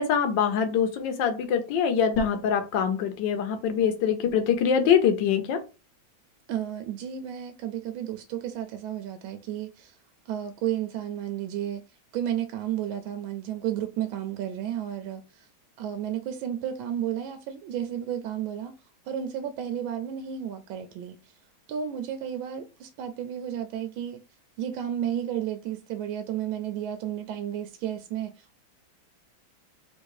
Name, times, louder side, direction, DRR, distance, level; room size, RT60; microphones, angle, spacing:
voice 1, 0.0-5.6, left 7 dB, 70° left, 1.4 m, -24 dB
voice 2, 6.5-10.0 10.3-11.8 12.1-15.5 15.8-18.7 19.1-21.3 21.7-24.2 24.6-28.6, right 10 dB, 80° right, 1.3 m, -32 dB
3.7 x 2.6 x 4.7 m
omnidirectional pair, 2.2 m